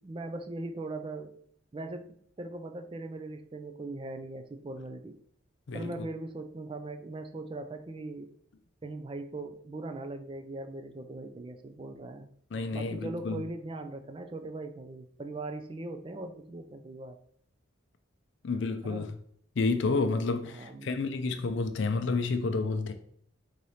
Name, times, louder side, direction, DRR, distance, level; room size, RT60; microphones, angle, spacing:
voice 1, 0.0-1.3 1.7-5.2 5.7-8.3 8.8-12.3 12.7-17.2 18.8-19.1 20.4-20.9, right 2 dB, 25° right, 0.3 m, -40 dB
voice 2, 5.7-6.1 12.5-13.4 18.4-19.2 19.6-22.9, left 3 dB, 60° left, 0.4 m, -30 dB
3.9 x 2.8 x 4.8 m
head